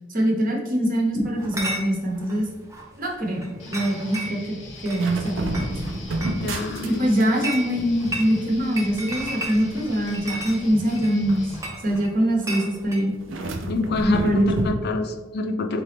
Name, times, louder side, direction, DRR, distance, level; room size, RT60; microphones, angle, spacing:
voice 1, 0.1-2.5 3.0-4.6 4.8-5.8 6.8-11.5 11.8-13.1 14.0-14.7, equal, 45° right, 0 dB, 0.8 m, -23 dB
Chatter / Chink clink, 1.4-13.1, right 1 dB, 15° right, 0.6 m, -36 dB
Guitar, 3.6-11.6, left 2 dB, 80° left, 0.8 m, -42 dB
sound 1, 4.7-7.3 7.5-12.0 13.2-14.7, right 1 dB, 85° right, 0.5 m, -32 dB
voice 2, 6.4-7.1 13.7-15.8, left 2 dB, 55° left, 5 dB, 0.4 m, -27 dB
4.1 x 3.3 x 3.3 m, 1.2 s
head